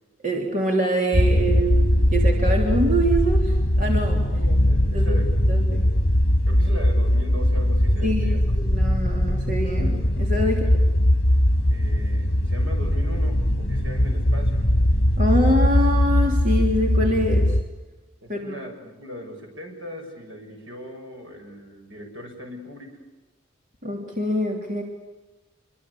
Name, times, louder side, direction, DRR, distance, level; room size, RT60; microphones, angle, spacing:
voice 1, 0.2-4.3 4.9-5.9 8.0-10.6 15.2-17.6 18.3-18.6 23.8-24.8, equal, 40° right, 0 dB, 3.3 m, -25 dB
sound 1, 1.1-17.6, equal, 55° left, 1.9 m, -20 dB
voice 2, 4.3-5.3 6.5-8.4 10.4-10.7 11.7-14.7 18.2-23.0, equal, 75° right, 3 dB, 7.0 m, -39 dB
26.0 x 24.0 x 8.5 m, 1.1 s
head